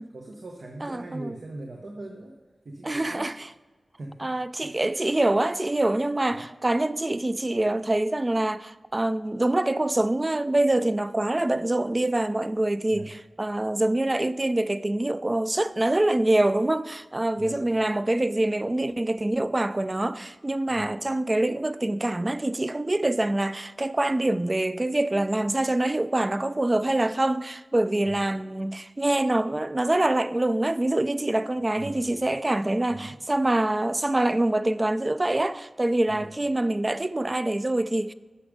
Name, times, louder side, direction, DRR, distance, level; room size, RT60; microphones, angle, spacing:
voice 1, 0.0-2.4 2.6-3.3 3.9-4.3 4.6-4.7 6.3-6.5 12.9-13.1 17.4-17.6 20.7-20.9 28.0-28.2 31.5-32.2 32.9-33.2 36.1-36.3, right 2 dB, 70° right, 0.9 m, -41 dB
voice 2, 0.8-1.4 2.8-3.3 4.2-38.1, right 1 dB, 30° right, 0.3 m, -25 dB
8.4 x 6.2 x 5.1 m
cardioid pair, 50°, 0 cm